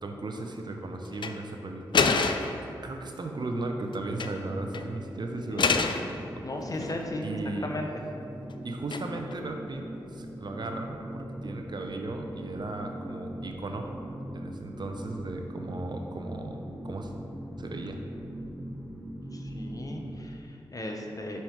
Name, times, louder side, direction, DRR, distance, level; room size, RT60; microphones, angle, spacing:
voice 1, 0.0-5.9 6.3-6.4 7.2-7.7 8.6-9.8 10.1-13.9 14.3-17.1 17.6-18.0, right 2 dB, 55° right, 3 dB, 0.6 m, -36 dB
sound 1, 1.1-1.3 1.9-2.6 3.9-4.4 4.7-4.9 5.6-6.1 6.6-7.3 8.9-9.3, left 5 dB, 60° left, 0.4 m, -27 dB
sound 2, 3.9-20.2, right 1 dB, 40° right, 1.2 m, -41 dB
voice 2, 5.5-5.9 6.4-7.3 7.6-7.9 19.3-21.4, left 1 dB, 40° left, 2 dB, 0.8 m, -36 dB
5.6 x 4.4 x 4.6 m, 2.8 s
cardioid pair, 45°, 9 cm